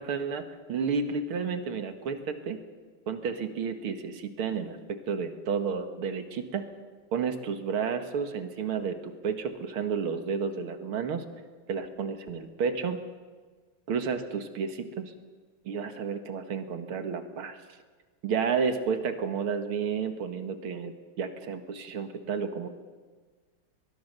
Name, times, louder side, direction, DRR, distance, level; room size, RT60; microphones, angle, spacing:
voice 1, 0.0-2.6 3.1-6.6 7.1-11.3 11.7-13.0 13.9-15.1 15.7-17.6 18.2-22.7, right 6 dB, 75° right, 7 dB, 2.4 m, -31 dB
24.0 x 20.5 x 6.7 m, 1.4 s
omnidirectional pair, 2.4 m